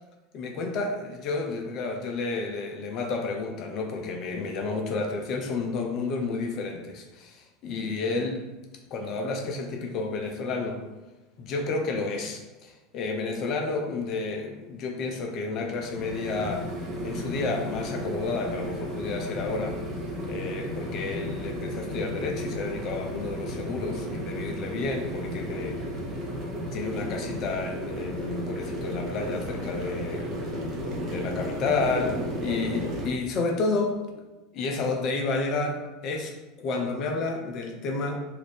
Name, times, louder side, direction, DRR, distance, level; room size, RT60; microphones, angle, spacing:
voice 1, 0.3-8.4 8.9-10.8 11.4-16.7 17.0-19.8 20.3-25.8 26.7-30.2 31.0-34.2 34.5-38.2, left 3 dB, 45° left, 2 dB, 0.4 m, -31 dB
sound 1, 15.6-33.1, equal, 40° right, 0.7 m, -34 dB
2.8 x 2.5 x 3.2 m, 1.1 s
figure-of-eight pair, 75°, 0 cm